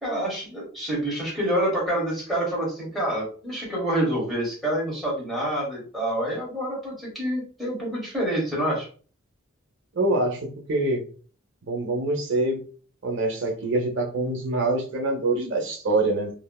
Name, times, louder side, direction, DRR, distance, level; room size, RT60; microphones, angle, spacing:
voice 1, 0.0-8.9, right 1 dB, ahead, -6 dB, 1.3 m, -27 dB
voice 2, 9.9-11.0 11.7-12.6 13.0-16.3, right 2 dB, 60° right, 1 dB, 0.6 m, -25 dB
3.2 x 2.1 x 2.3 m, 0.41 s
head